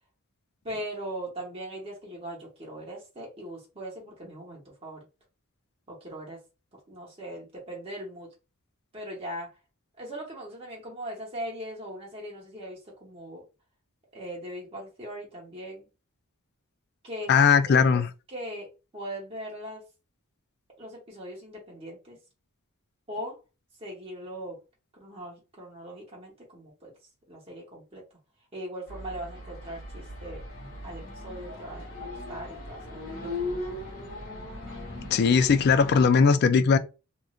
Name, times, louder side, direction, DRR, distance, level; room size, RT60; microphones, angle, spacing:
voice 1, 0.6-5.0 5.9-6.4 6.9-8.3 8.9-9.5 10.0-13.4 14.1-15.9 17.0-18.0 18.3-18.7 18.9-19.8 20.8-22.2 23.1-23.4 23.8-24.6 24.9-26.9 27.3-28.0 28.5-30.4 30.8-33.1 33.4-33.6, right 1 dB, 25° right, 0.8 m, -40 dB
voice 2, 17.3-18.1 35.1-36.8, left 5 dB, 45° left, 0.3 m, -19 dB
sound 1, 28.9-36.1, left 2 dB, 75° left, 1.5 m, -38 dB
3.0 x 2.4 x 2.4 m
head